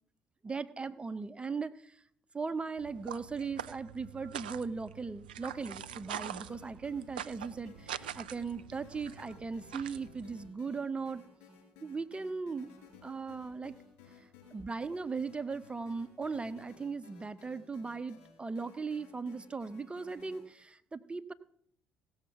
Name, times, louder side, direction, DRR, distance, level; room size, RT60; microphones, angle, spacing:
voice 1, 0.4-2.0 2.3-11.2 11.8-12.7 13.0-13.8 14.2-21.3, right 4 dB, 25° right, 13 dB, 0.8 m, -38 dB
sound 1, 2.8-10.5, right 10 dB, 85° right, 0.4 m, -44 dB
sound 2, 5.4-20.4, left 6 dB, 70° left, 5.7 m, -58 dB
17.0 x 7.2 x 6.0 m, 0.63 s
hypercardioid pair, 55°, 5 cm